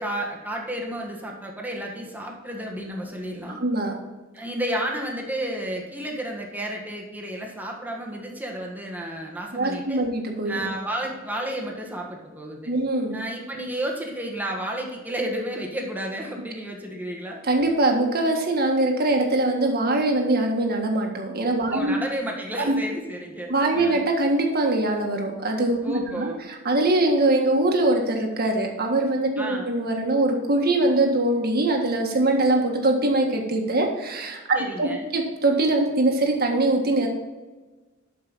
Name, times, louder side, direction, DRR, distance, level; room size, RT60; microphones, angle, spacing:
voice 1, 0.0-3.6 4.3-10.0 10.5-12.7 13.1-17.4 21.7-24.0 25.8-26.4 29.4-29.7 34.5-35.1, right 1 dB, 10° right, 0 dB, 1.5 m, -32 dB
voice 2, 3.6-3.9 9.5-10.7 12.7-13.2 17.4-22.0 22.6-22.7 23.5-37.1, right 2 dB, 50° right, 2 dB, 1.7 m, -22 dB
12.5 x 5.4 x 4.1 m, 1.2 s
head